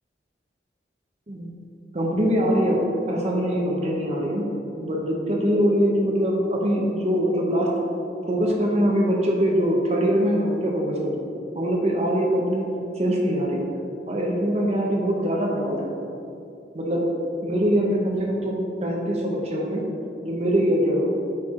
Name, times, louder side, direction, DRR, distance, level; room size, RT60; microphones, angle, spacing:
voice 1, 1.9-4.5 4.8-7.7 8.3-11.3 11.5-12.7 13.0-13.7 14.1-15.9 16.7-17.0 17.4-19.8 20.2-21.0, equal, 40° right, -1 dB, 0.8 m, -23 dB
8.8 x 4.5 x 3.7 m, 2.6 s
head